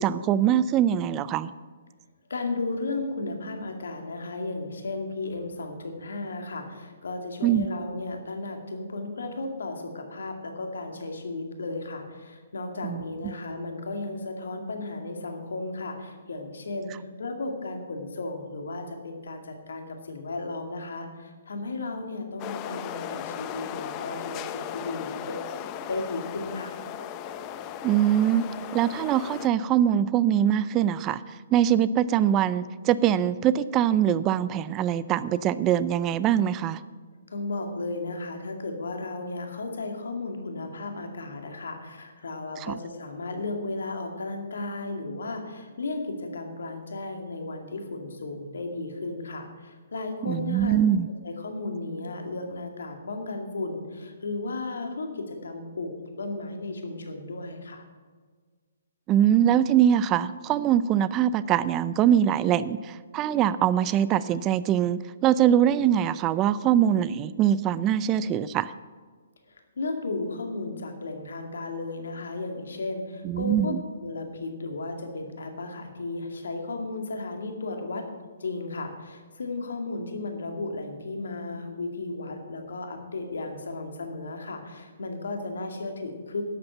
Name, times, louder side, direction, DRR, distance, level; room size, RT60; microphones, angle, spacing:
voice 1, 0.0-1.5 7.4-7.7 12.8-13.0 27.8-28.4 28.7-31.2 31.5-36.8 42.6-42.8 50.3-51.1 59.1-68.7 73.2-73.8, right 10 dB, 25° right, 16 dB, 0.4 m, -23 dB
voice 2, 2.3-25.4 25.7-26.7 37.3-50.8 51.2-57.8 69.5-78.1 78.4-86.4, left 2 dB, 75° left, 5 dB, 2.2 m, -34 dB
sound 1, 22.4-29.5, left 9 dB, 30° left, 0.6 m, -37 dB
11.5 x 7.8 x 7.1 m, 1.5 s
hypercardioid pair, 135°, 0 cm